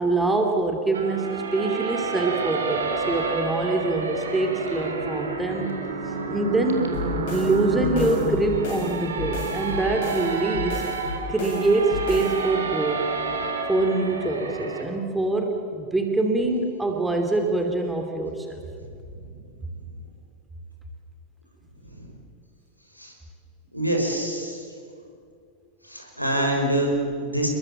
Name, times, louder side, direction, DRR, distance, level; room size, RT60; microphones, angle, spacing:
voice 1, 0.0-5.7 6.3-7.0 7.3-10.8 11.3-13.1 13.7-18.6, right 2 dB, 10° right, 3 dB, 2.8 m, -24 dB
sound 1, 0.9-14.8, right 3 dB, 70° right, 3.4 m, -30 dB
sound 2, 6.9-12.4, left 4 dB, 50° left, 7.9 m, -34 dB
voice 2, 23.7-24.6 25.8-27.5, right 1 dB, 90° left, 1 dB, 5.9 m, -25 dB
30.0 x 21.5 x 7.4 m, 2.4 s
figure-of-eight pair, 90°, 0 cm